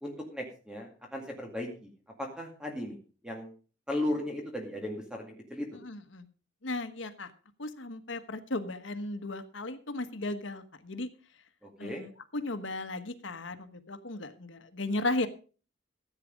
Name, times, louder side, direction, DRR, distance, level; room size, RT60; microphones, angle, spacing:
voice 1, 0.0-1.9 2.2-3.0 3.2-3.5 3.9-5.7 11.6-12.0, left 1 dB, 5° right, 2 dB, 2.0 m, -36 dB
voice 2, 5.8-6.2 6.6-7.3 7.6-11.1 11.8-15.3, left 2 dB, 75° left, 9 dB, 1.3 m, -35 dB
14.5 x 8.4 x 5.2 m, 0.37 s
head